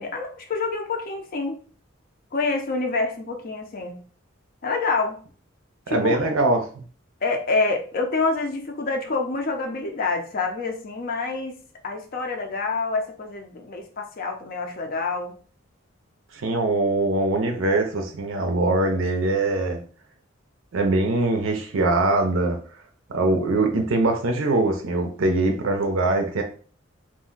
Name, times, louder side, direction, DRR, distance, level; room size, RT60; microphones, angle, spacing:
voice 1, 0.0-1.6 2.3-4.0 4.6-5.2 5.9-6.3 7.2-11.6 11.8-15.4, left 3 dB, 50° left, 0.5 m, -27 dB
voice 2, 5.9-6.8 16.3-19.8 20.7-22.6 23.1-26.4, right 2 dB, 85° right, 0.5 m, -22 dB
2.5 x 2.1 x 3.7 m
head